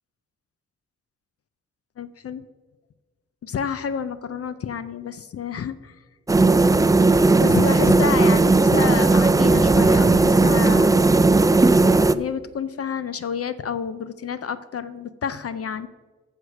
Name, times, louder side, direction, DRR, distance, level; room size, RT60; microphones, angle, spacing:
voice 1, 2.0-2.4 3.4-6.0 7.4-11.0 12.1-15.9, left 7 dB, 50° left, 13 dB, 0.5 m, -29 dB
sound 1, 6.3-12.1, right 3 dB, 10° right, 0.3 m, -16 dB
8.0 x 6.5 x 6.5 m, 1.3 s
cardioid pair, 55°, 31 cm